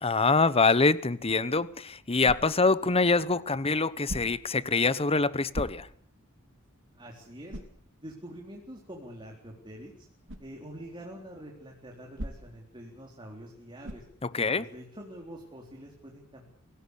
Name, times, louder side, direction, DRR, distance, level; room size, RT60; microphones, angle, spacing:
voice 1, 0.0-5.9 14.3-14.6, left 3 dB, 25° left, 1.0 m, -25 dB
sound 1, 2.2-2.8 4.0-4.6 5.5-6.1 6.6-6.7 7.5-7.8 10.3-10.5 12.2-12.7 13.8-14.2, equal, 60° right, 3.2 m, -39 dB
voice 2, 6.9-7.6 8.0-10.1 10.4-14.0 14.3-16.4, right 1 dB, 20° right, 4.0 m, -45 dB
25.5 x 17.5 x 8.4 m
head